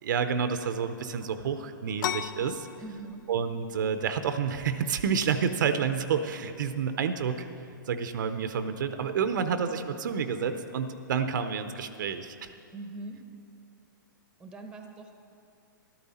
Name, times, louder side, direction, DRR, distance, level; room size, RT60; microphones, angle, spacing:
voice 1, 0.0-2.7 3.3-7.5 7.9-12.5, right 6 dB, 65° right, 9 dB, 0.7 m, -29 dB
sound 1, 2.0-11.4, left 10 dB, 70° left, 0.5 m, -43 dB
voice 2, 2.8-3.3 12.7-13.3 14.4-15.2, right 3 dB, 5° right, 5 dB, 0.9 m, -42 dB
12.5 x 12.5 x 4.2 m, 2.6 s
hypercardioid pair, 145°, 11 cm